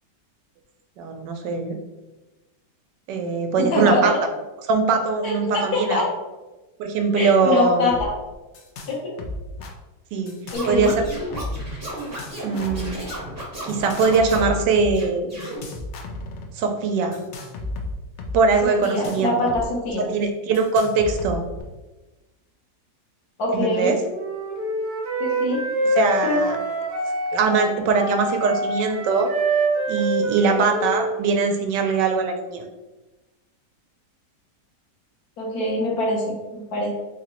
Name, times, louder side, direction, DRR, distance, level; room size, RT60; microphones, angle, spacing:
voice 1, 1.0-1.8 3.1-4.1 4.6-6.0 6.8-8.0 10.1-10.3 10.6-11.1 12.4-13.0 13.6-15.3 16.5-17.2 18.3-19.5 20.0-21.4 23.5-24.0 26.0-26.6 27.3-29.3 29.9-32.7, right 4 dB, 90° right, 5 dB, 1.2 m, -21 dB
voice 2, 3.6-4.0 5.2-6.0 7.2-8.1 8.9-9.1 10.5-10.9 18.8-20.1 23.4-24.0 25.2-25.6 26.2-26.4 35.4-36.9, left 1 dB, 65° left, -3 dB, 1.3 m, -23 dB
sound 1, 7.9-8.1 8.3-8.9 9.2-9.7 10.3-11.7 12.0-12.9 13.7-14.9 15.4-16.5 17.1-19.6 19.9-20.0 20.5-21.6, left 2 dB, 85° left, 0.6 m, -34 dB
Scratching (performance technique), 10.5-14.5 14.9-15.6, right 1 dB, 15° right, 0.6 m, -33 dB
Wind instrument woodwind instrument, 24.1-31.5, right 2 dB, 55° right, 0.6 m, -26 dB
3.6 x 2.9 x 2.9 m, 1.1 s
omnidirectional pair, 1.8 m